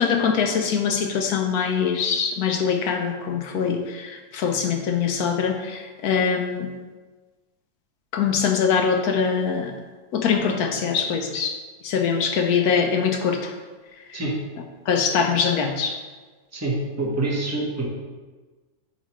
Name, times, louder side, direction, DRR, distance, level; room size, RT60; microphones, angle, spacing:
voice 1, 0.0-6.7 8.1-9.7 10.1-13.5 14.1-14.2 14.9-16.0, left 6 dB, 75° left, 4 dB, 1.1 m, -23 dB
voice 2, 16.5-17.8, right 2 dB, 10° right, -3 dB, 1.0 m, -26 dB
8.3 x 5.0 x 3.1 m, 1.3 s
omnidirectional pair, 1.6 m